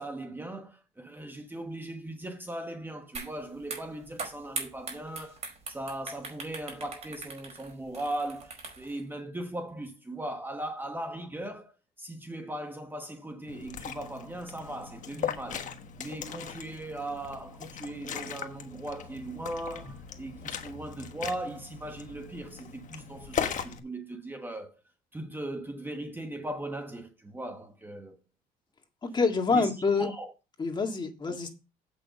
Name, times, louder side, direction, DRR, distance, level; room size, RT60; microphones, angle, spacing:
voice 1, 0.0-15.7 16.0-24.8 25.1-28.2 29.5-30.3, right 1 dB, 10° right, 1.2 m, -38 dB
sound 1, 3.1-3.3 3.6-9.0, right 4 dB, 40° right, 4.9 m, -40 dB
Liquid, 13.5-23.8, left 8 dB, 50° left, 1.3 m, -39 dB
voice 2, 29.0-30.1 30.6-31.5, left 4 dB, 25° left, 2.0 m, -26 dB
8.2 x 6.4 x 5.5 m
cardioid pair, 110°, 17 cm